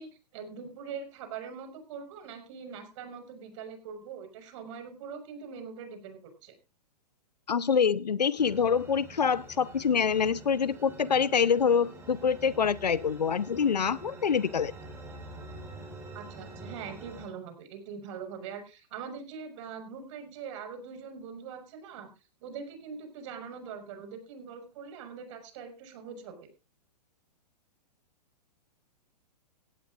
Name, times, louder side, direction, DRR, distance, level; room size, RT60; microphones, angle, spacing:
voice 1, 0.0-6.6 16.1-22.1 22.4-26.5, right 6 dB, 50° right, 6 dB, 5.7 m, -42 dB
voice 2, 7.5-14.7, left 6 dB, 80° left, 19 dB, 0.9 m, -26 dB
sound 1, 8.4-17.3, right 2 dB, 10° right, 5.0 m, -46 dB
18.0 x 16.0 x 2.6 m, 0.30 s
figure-of-eight pair, 115°, 21 cm